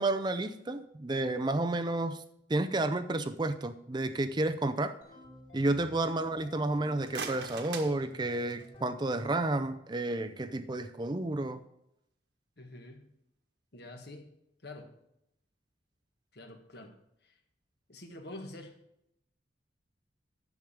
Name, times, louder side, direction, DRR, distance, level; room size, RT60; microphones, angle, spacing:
voice 1, 0.0-2.2 2.5-5.0 5.5-11.6, right 2 dB, 25° right, 0.5 m, -31 dB
sound 1, 5.0-7.6 8.0-9.9, left 1 dB, 35° left, 3.1 m, -53 dB
voice 2, 5.8-6.2 12.6-13.1 13.7-14.3 14.6-14.9 16.3-16.9 17.2-17.4 17.9-18.7, left 1 dB, 60° left, 1.6 m, -47 dB
sound 2, 6.8-8.8, right 5 dB, 65° right, 1.4 m, -42 dB
10.5 x 7.3 x 4.9 m
head